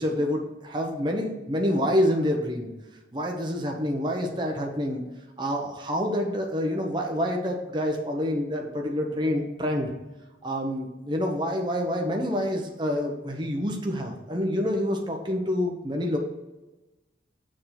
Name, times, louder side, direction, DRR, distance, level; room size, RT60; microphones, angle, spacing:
voice 1, 0.0-2.7 3.1-5.0 5.4-9.9 10.4-16.2, equal, 25° right, 1 dB, 0.9 m, -27 dB
6.8 x 3.8 x 5.8 m, 1.1 s
head